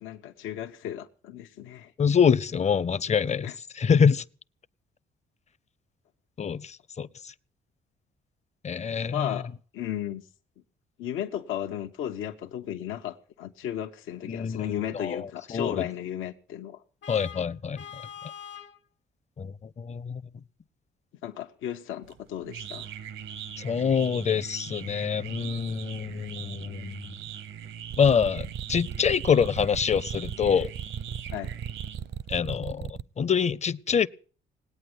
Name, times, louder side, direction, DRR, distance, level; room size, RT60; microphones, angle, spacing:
voice 1, 0.0-1.9 3.4-3.6 9.1-10.2 11.0-16.8 21.2-22.9 31.3-31.5, left 11 dB, 85° left, 1.0 m, -35 dB
voice 2, 2.0-3.5 3.8-4.2 6.4-7.1 8.6-9.3 14.3-15.9 17.1-17.8 19.4-20.2 23.6-27.0 28.0-30.7 32.3-34.1, left 6 dB, 35° left, 0.7 m, -25 dB
Vehicle horn car horn honking, 17.0-18.8, left 9 dB, 65° left, 1.3 m, -43 dB
sound 1, 22.0-32.4, right 9 dB, 80° right, 1.1 m, -41 dB
sound 2, 27.9-33.0, right 8 dB, 55° right, 0.7 m, -35 dB
19.5 x 8.9 x 8.0 m
cardioid pair, 90°, 20 cm